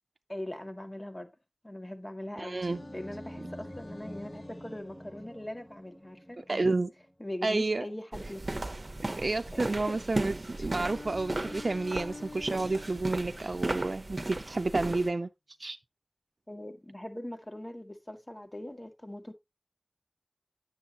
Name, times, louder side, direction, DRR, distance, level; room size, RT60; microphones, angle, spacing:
voice 1, 0.3-1.3 1.6-6.7 7.2-8.7 9.6-10.0 16.5-19.3, left 1 dB, 30° left, 1.7 m, -41 dB
voice 2, 2.4-2.8 6.5-6.9 7.4-7.8 9.2-15.3 15.6-15.8, right 3 dB, 85° right, 0.4 m, -30 dB
sound 1, 2.5-7.1, equal, 5° right, 0.9 m, -47 dB
Singing, 2.6-6.6 10.6-14.6, left 2 dB, 85° left, 0.8 m, -48 dB
sound 2, 8.1-15.1, right 2 dB, 55° right, 0.8 m, -36 dB
9.8 x 6.9 x 2.9 m
wide cardioid pair, 50°, 0 cm